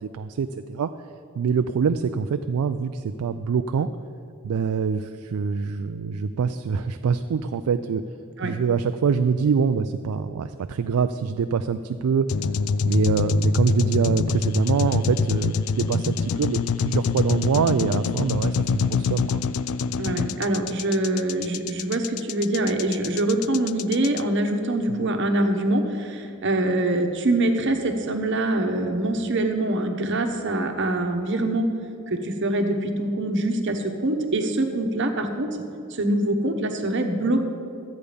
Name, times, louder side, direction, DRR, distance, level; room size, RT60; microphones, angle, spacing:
voice 1, 0.0-0.9 1.4-3.9 4.4-8.0 8.4-12.3 12.8-19.4 24.9-25.0, right 6 dB, 90° right, 9 dB, 0.4 m, -24 dB
sound 1, 12.3-24.2, left 5 dB, 70° left, 0.4 m, -25 dB
voice 2, 20.0-31.7 32.1-35.5 35.9-37.4, right 1 dB, 55° right, 5 dB, 1.1 m, -24 dB
13.0 x 8.3 x 5.2 m, 2.6 s
head